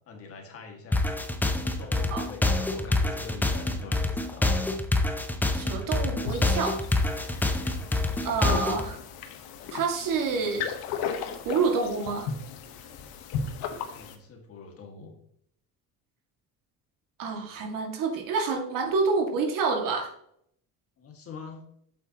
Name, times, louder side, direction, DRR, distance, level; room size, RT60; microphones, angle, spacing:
voice 1, 0.1-1.1 1.4-4.6 13.8-15.2 21.0-21.6, left 4 dB, 40° left, 2 dB, 2.0 m, -44 dB
sound 1, 0.9-8.9, left 2 dB, 5° left, 0.5 m, -26 dB
voice 2, 5.5-6.8 8.2-9.0 9.7-10.7 11.5-12.3 17.2-20.1, right 4 dB, 65° right, 3 dB, 2.1 m, -28 dB
sound 2, 6.2-14.2, left 6 dB, 85° left, 1.3 m, -36 dB
8.3 x 7.9 x 2.9 m, 0.69 s
cardioid pair, 160°, 36 cm